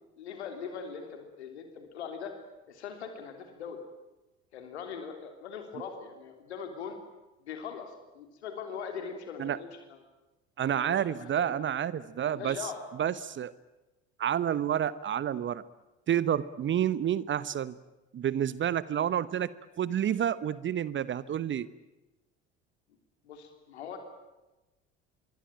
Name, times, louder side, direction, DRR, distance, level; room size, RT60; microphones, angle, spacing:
voice 1, 0.0-2.3 2.7-3.8 4.5-7.0 7.4-10.0 10.7-11.6 12.3-12.8 23.2-24.0, left 6 dB, 75° left, 6 dB, 3.3 m, -41 dB
voice 2, 10.6-12.6 13.0-13.5 14.2-15.6 16.1-17.7 18.1-19.5 19.8-21.7, right 10 dB, 35° right, 18 dB, 1.0 m, -29 dB
26.0 x 23.0 x 9.0 m, 1.1 s
figure-of-eight pair, 60°, 34 cm